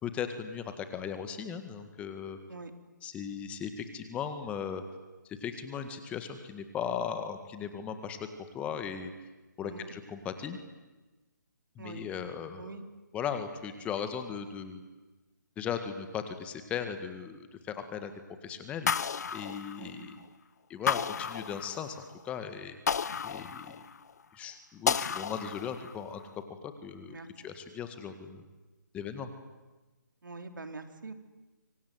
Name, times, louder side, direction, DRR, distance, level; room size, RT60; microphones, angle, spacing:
voice 1, 0.0-2.4 3.0-4.8 5.3-8.2 8.5-9.1 9.6-10.6 11.8-12.7 13.1-14.8 15.6-18.1 18.4-18.9 19.3-20.2 20.7-22.0 22.2-22.8 23.2-23.8 24.3-26.2 26.6-27.2 27.4-28.4 28.9-29.3, left 7 dB, 10° left, 8 dB, 1.8 m, -37 dB
voice 2, 9.6-9.9 11.8-12.0 12.6-12.8 19.8-20.1 27.1-27.3 30.2-31.1, right 3 dB, 75° right, 7 dB, 3.9 m, -44 dB
sound 1, 18.9-20.2 20.9-22.0 22.9-24.1 24.9-26.0, left 6 dB, 55° left, 0.8 m, -32 dB
25.5 x 23.5 x 9.5 m, 1.2 s
figure-of-eight pair, 150°, 11 cm